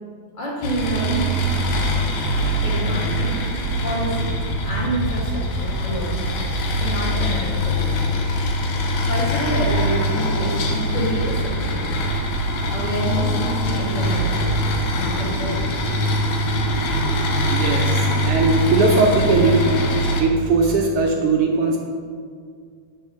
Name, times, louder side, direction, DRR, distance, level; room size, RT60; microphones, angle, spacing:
voice 1, 0.3-1.5 2.6-3.4 3.8-6.2 6.8-8.2 9.1-11.9 12.7-14.6 14.9-15.6, equal, 30° left, -6 dB, 0.8 m, -28 dB
sound 1, 0.6-20.2, equal, 85° left, 2.1 m, -22 dB
voice 2, 17.5-18.0 18.3-19.6 20.2-21.8, right 3 dB, 75° right, 0 dB, 1.3 m, -19 dB
8.2 x 3.6 x 5.6 m, 2.1 s
omnidirectional pair, 3.3 m